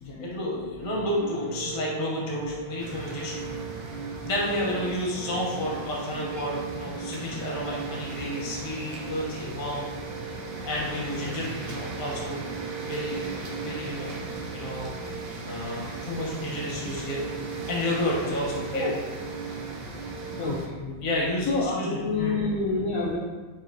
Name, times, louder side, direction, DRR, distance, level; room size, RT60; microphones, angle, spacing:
voice 1, 0.2-3.4 4.2-9.8 10.2-10.3 10.6-12.4 12.8-14.9 15.4-17.2 17.7-18.9 20.2-20.3 21.0-22.5, left 1 dB, 45° left, -3 dB, 0.7 m, -31 dB
sound 1, 0.8-20.4, right 5 dB, 50° right, 0.3 m, -38 dB
sound 2, 2.8-20.7, right 2 dB, 70° right, 0.8 m, -39 dB
voice 2, 20.4-20.9 21.5-23.2, left 3 dB, 75° left, -4 dB, 0.8 m, -28 dB
5.6 x 2.7 x 2.6 m, 1.3 s
omnidirectional pair, 2.1 m